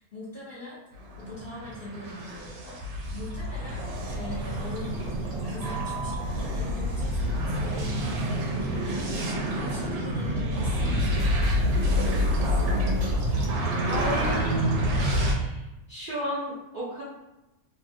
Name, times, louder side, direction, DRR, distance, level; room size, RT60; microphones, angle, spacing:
voice 1, 0.0-5.1 5.4-12.8, left 2 dB, 60° left, -10 dB, 0.5 m, -42 dB
sound 1, 1.0-15.3, equal, 90° right, 1.2 m, -28 dB
sound 2, 4.1-13.6, right 1 dB, 70° right, 1.2 m, -37 dB
voice 2, 13.8-17.0, equal, 50° right, -9 dB, 0.6 m, -34 dB
2.9 x 2.4 x 2.6 m, 0.98 s
omnidirectional pair, 1.8 m